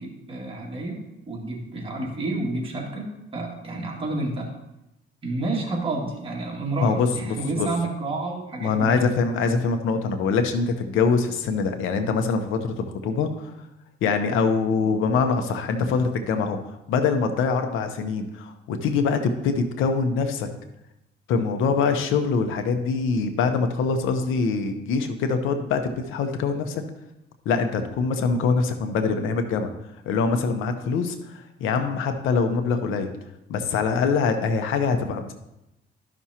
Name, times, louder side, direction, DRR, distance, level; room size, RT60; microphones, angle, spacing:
voice 1, 0.0-4.5 5.2-9.0, right 2 dB, 25° right, -2 dB, 2.2 m, -30 dB
voice 2, 6.8-7.7 8.6-13.5 14.0-16.6 16.9-20.5 21.3-26.8 27.4-29.7 30.1-33.1 33.5-35.3, left 5 dB, 85° left, 7 dB, 0.9 m, -24 dB
12.5 x 6.0 x 2.9 m, 0.90 s
cardioid pair, 105°, 20 cm